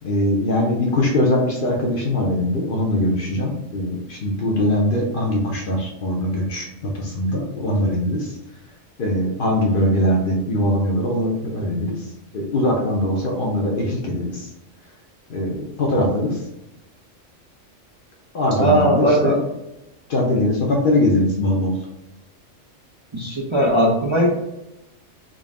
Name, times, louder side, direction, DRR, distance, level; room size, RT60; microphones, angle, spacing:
voice 1, 0.0-8.3 9.0-12.0 12.3-14.5 15.3-16.4 18.3-19.4 20.1-21.7, left 1 dB, 55° left, 0 dB, 0.7 m, -21 dB
voice 2, 18.6-19.4 23.1-24.3, right 1 dB, 35° right, -4 dB, 0.5 m, -18 dB
3.8 x 2.5 x 3.6 m, 0.90 s
omnidirectional pair, 1.3 m